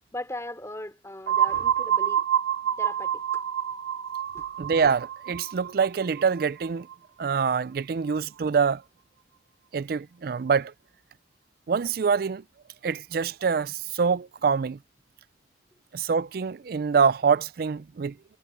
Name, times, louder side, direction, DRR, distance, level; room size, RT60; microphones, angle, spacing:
voice 1, 0.1-2.2 2.8-3.4 4.3-4.5, left 1 dB, 15° left, 3.6 m, -38 dB
sound 1, 1.3-6.9, right 10 dB, 80° right, 1.3 m, -27 dB
voice 2, 4.6-6.9 7.2-8.8 9.7-10.7 11.7-12.4 12.8-14.8 15.9-18.2, right 6 dB, 55° right, 0.4 m, -25 dB
head